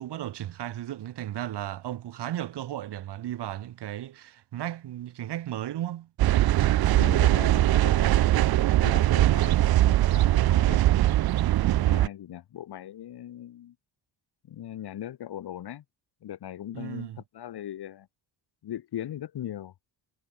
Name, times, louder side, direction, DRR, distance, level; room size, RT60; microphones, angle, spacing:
voice 1, 0.0-6.1 16.7-17.2, right 12 dB, 85° right, 2.2 m, -35 dB
sound 1, 6.2-12.1, right 14 dB, 65° right, 0.7 m, -21 dB
voice 2, 6.9-9.8 10.1-11.2 11.8-13.7 14.5-15.8 16.2-17.1 17.3-18.1 18.6-19.7, left 11 dB, 70° left, 3.6 m, -39 dB
wide cardioid pair, 175°, 40 cm